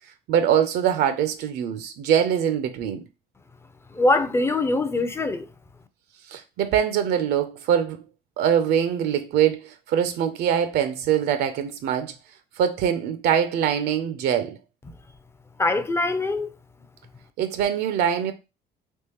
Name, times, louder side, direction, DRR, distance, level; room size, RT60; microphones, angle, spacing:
voice 1, 0.3-3.0 6.3-8.0 8.4-12.1 12.6-14.6 17.4-18.3, right 9 dB, 75° right, 0.4 m, -23 dB
voice 2, 3.9-5.5 15.6-16.5, left 2 dB, 15° left, 0.4 m, -23 dB
3.5 x 2.9 x 2.9 m
cardioid pair, 110°, 17 cm